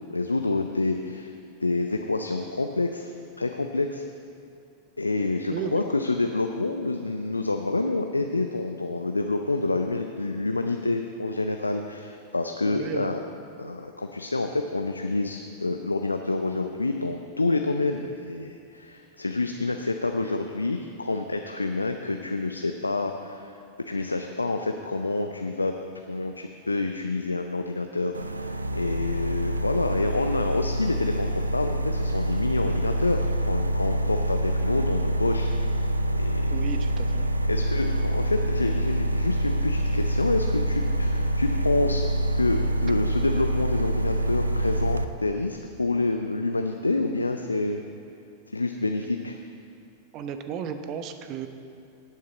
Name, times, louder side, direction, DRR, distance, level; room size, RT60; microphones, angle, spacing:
voice 1, 0.1-1.3 1.6-4.0 5.0-13.2 13.6-23.6 23.9-25.7 26.1-35.8 36.1-36.7 37.5-42.0 42.4-47.8 48.5-49.4, left 2 dB, 80° left, 5 dB, 0.5 m, -28 dB
voice 2, 5.5-5.8 12.6-13.1 36.5-37.3 50.1-51.5, right 8 dB, 35° right, 8 dB, 0.9 m, -34 dB
sound 1, 28.1-45.1, right 1 dB, 80° right, 0.5 m, -26 dB
17.0 x 9.4 x 4.0 m, 2.5 s
figure-of-eight pair, 90°, 0 cm